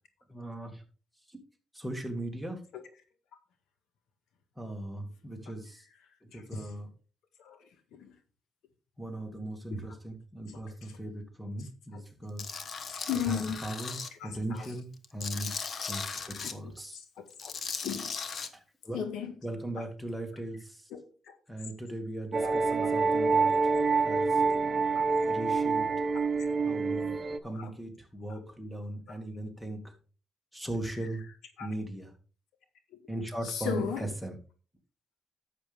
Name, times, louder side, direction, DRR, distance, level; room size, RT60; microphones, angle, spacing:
voice 1, 0.3-0.8 1.3-1.4 1.7-2.6 4.6-5.9 6.2-6.9 9.0-12.5 13.2-15.5 15.9-17.0 18.5-19.0 19.4-20.9 21.5-23.8 24.0-24.4 25.2-25.9 26.6-27.1 27.4-29.9 30.5-31.2 31.6-32.1 33.1-34.4, right 1 dB, ahead, 2.3 m, -38 dB
voice 2, 6.3-6.7 7.4-7.6 7.9-8.1 9.7-9.8 10.5-11.0 11.6-12.0 12.9-13.7 14.1-14.7 16.4-17.5 17.8-18.1 18.9-19.4 19.7-19.8 20.9-21.0 22.4-22.9 24.9-25.1 26.1-26.2 27.5-27.7 28.3-28.5 30.9-31.7 33.2-34.1, left 8 dB, 80° left, 1.6 m, -38 dB
Tools, 12.4-14.1 14.6-16.5 17.3-18.5, left 5 dB, 50° left, 1.1 m, -38 dB
sound 1, 22.3-27.4, right 4 dB, 35° right, 0.9 m, -27 dB
11.0 x 7.6 x 3.5 m
cardioid pair, 90°, 0 cm